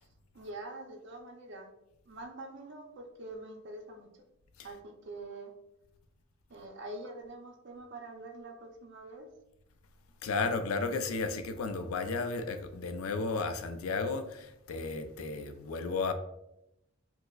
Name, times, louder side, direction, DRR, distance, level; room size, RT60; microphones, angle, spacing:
voice 1, 0.3-1.7 2.1-4.1 4.6-5.5 6.5-9.3, right 2 dB, 55° right, 0.5 m, -45 dB
voice 2, 10.2-16.1, left 4 dB, 85° left, 0.4 m, -33 dB
5.6 x 2.0 x 2.3 m
head